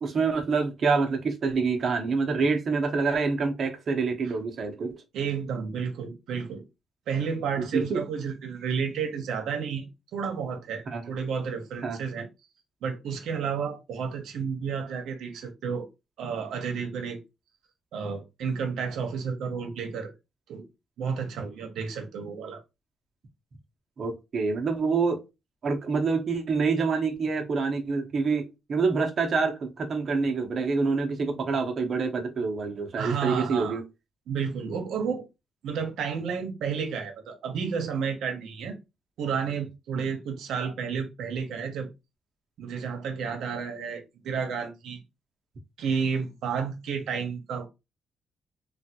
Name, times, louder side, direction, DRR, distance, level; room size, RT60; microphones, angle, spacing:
voice 1, 0.0-5.0 7.6-8.0 10.9-11.1 11.8-12.0 24.0-25.2 25.6-33.8, right 4 dB, 45° right, 0.7 m, -26 dB
voice 2, 5.1-6.6 7.1-12.3 12.8-15.9 16.2-17.2 17.9-20.1 20.5-20.6 21.0-22.6 33.0-33.8 34.3-35.2 35.6-38.8 39.2-41.9 42.6-45.0 45.8-47.7, right 6 dB, 85° right, 0.7 m, -31 dB
3.3 x 2.2 x 2.8 m
cardioid pair, 150°, 0 cm